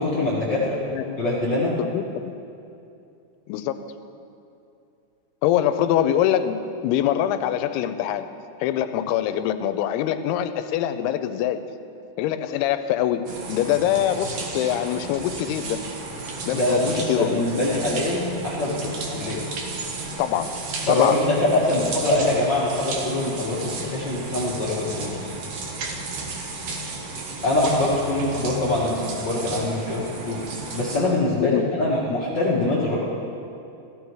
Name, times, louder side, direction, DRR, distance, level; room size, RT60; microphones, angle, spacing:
voice 1, 0.0-0.8 1.2-1.8 16.5-19.4 20.9-25.3 27.4-30.4 30.7-33.0, left 2 dB, 55° left, -6 dB, 1.2 m, -23 dB
voice 2, 0.9-1.3 1.8-2.3 3.5-3.9 5.4-8.3 8.6-11.6 12.2-15.9 16.5-17.5 20.2-21.2 31.4-31.6, left 11 dB, 85° left, 10 dB, 2.6 m, -24 dB
sound 1, 13.3-31.0, right 3 dB, 60° right, 1.7 m, -33 dB
16.5 x 13.5 x 4.7 m, 2.7 s
omnidirectional pair, 4.6 m